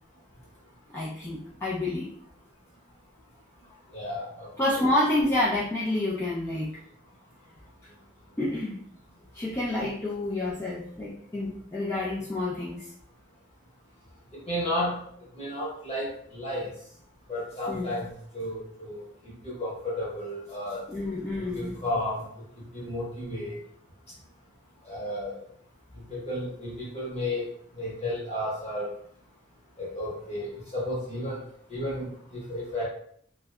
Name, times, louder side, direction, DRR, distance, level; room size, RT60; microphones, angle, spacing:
voice 1, 0.9-2.1 4.6-6.7 8.4-8.8 9.3-12.9 17.7-17.9 20.9-21.7, left 1 dB, 15° left, -7 dB, 0.4 m, -28 dB
voice 2, 3.9-4.9 14.5-15.0 15.3-16.7 17.3-20.8 21.5-22.3 22.6-23.6 24.9-25.4 26.1-27.5 27.8-28.9 29.8-31.4 31.7-32.8, left 1 dB, 35° left, -5 dB, 1.0 m, -33 dB
2.6 x 2.1 x 2.3 m, 0.63 s
head